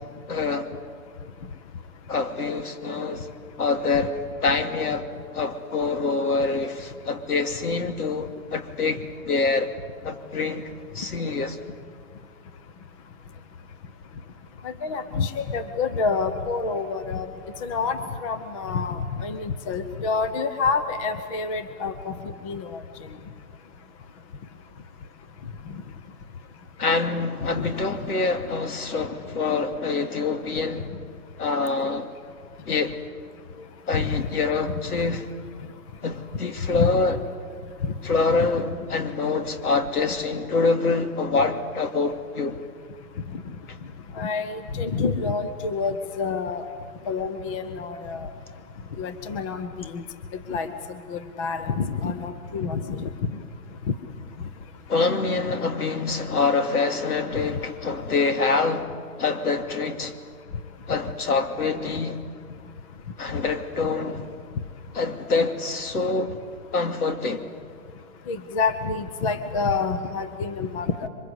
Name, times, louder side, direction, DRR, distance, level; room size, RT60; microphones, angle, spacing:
voice 1, 0.3-0.7 2.1-3.3 3.6-9.7 10.0-11.6 26.8-30.9 31.4-32.1 32.7-33.0 33.9-35.2 36.0-37.2 38.0-42.6 54.9-58.9 59.2-60.1 60.9-62.2 63.2-64.2 64.9-66.4 66.7-67.5, left 4 dB, 70° left, 2.7 m, -25 dB
voice 2, 14.6-17.3 17.6-22.1 22.4-22.8 27.6-27.7 33.9-34.2 36.7-36.9 37.8-37.9 38.3-38.5 44.2-46.6 47.1-48.3 49.0-50.0 50.5-50.7 51.1-53.1 53.9-54.0 68.3-70.9, left 4 dB, 20° left, 0.9 m, -27 dB
27.0 x 24.0 x 8.2 m
hypercardioid pair, 150°, 46 cm